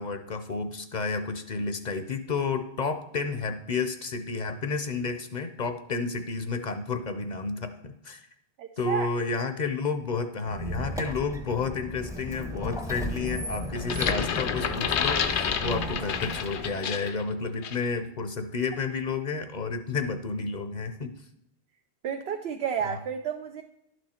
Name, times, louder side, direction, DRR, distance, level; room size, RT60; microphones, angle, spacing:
voice 1, 0.0-7.7 8.0-8.2 8.8-21.1 22.8-23.0, left 4 dB, 45° left, 8 dB, 0.7 m, -31 dB
voice 2, 8.6-9.1 22.0-23.6, right 8 dB, 70° right, 5 dB, 0.9 m, -31 dB
Squeak, 10.5-16.9, equal, 5° right, 0.7 m, -35 dB
sound 1, 13.8-17.2 17.6-17.8, left 7 dB, 80° left, 1.0 m, -29 dB
11.5 x 6.3 x 4.3 m, 0.83 s
omnidirectional pair, 1.1 m